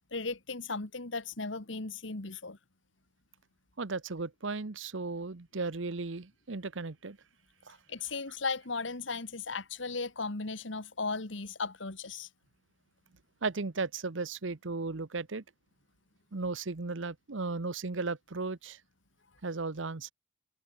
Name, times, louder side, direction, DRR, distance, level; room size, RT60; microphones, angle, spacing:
voice 1, 0.1-2.6 7.9-12.3, left 4 dB, 70° left, 1.8 m, -36 dB
voice 2, 3.8-7.2 7.7-7.8 13.4-15.4 16.3-18.8 19.4-20.1, right 3 dB, 75° right, 1.0 m, -35 dB
head